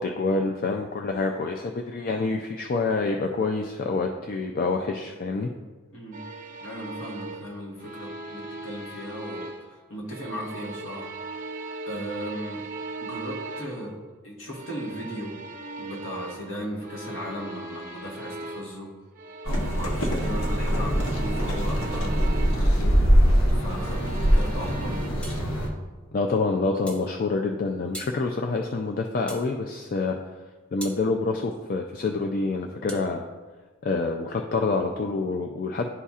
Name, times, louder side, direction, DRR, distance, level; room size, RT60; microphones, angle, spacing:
voice 1, 0.0-5.5 26.1-30.2 30.7-33.2 33.8-35.9, left 3 dB, 45° left, 3 dB, 0.3 m, -27 dB
voice 2, 5.9-6.2 6.6-9.5 9.9-11.1 11.9-12.7 13.0-13.9 14.2-15.4 15.8-18.9 19.4-23.0 23.5-25.0, equal, 65° left, -2 dB, 1.4 m, -36 dB
sound 1, 6.1-9.8 10.1-13.9 14.5-18.8 19.2-22.7 23.5-25.1, right 3 dB, 40° right, 0.5 m, -39 dB
sound 2, 19.5-25.7, equal, 85° left, 1.0 m, -23 dB
sound 3, 25.2-25.5 26.9-27.1 27.9-28.2 29.3-29.5 30.8-31.0 32.9-33.1, right 1 dB, 5° left, 0.7 m, -40 dB
11.0 x 4.1 x 2.4 m, 1.3 s
head